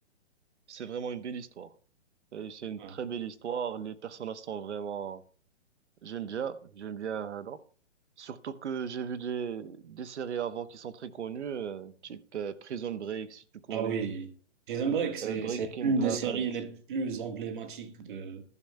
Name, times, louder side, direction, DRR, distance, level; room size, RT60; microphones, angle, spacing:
voice 1, 0.7-1.7 2.3-5.2 6.0-7.6 8.2-14.1 15.2-16.4, right 7 dB, 75° right, 1.1 m, -36 dB
voice 2, 13.7-14.3 14.7-18.4, right 5 dB, 45° right, 1.6 m, -32 dB
19.5 x 11.0 x 2.3 m
hypercardioid pair, 165°, 35 cm